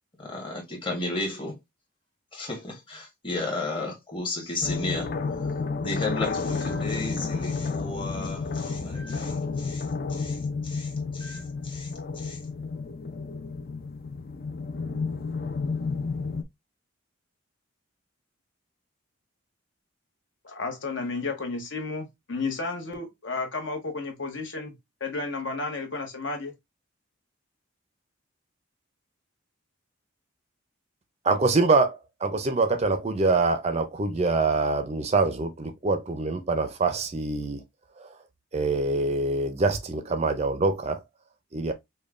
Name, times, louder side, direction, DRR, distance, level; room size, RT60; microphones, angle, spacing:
voice 1, 0.2-1.6 2.3-5.1 5.4-5.5 5.8-10.4 10.6-11.9 12.1-12.4, left 2 dB, 25° left, 1.2 m, -34 dB
sound 1, 4.6-16.4, left 4 dB, 45° left, 0.4 m, -31 dB
voice 2, 20.4-26.5, left 3 dB, 65° left, 1.0 m, -32 dB
voice 3, 31.2-37.6 38.0-38.2 38.5-41.0 41.5-41.7, right 3 dB, 30° right, 0.4 m, -25 dB
5.1 x 2.2 x 2.4 m
head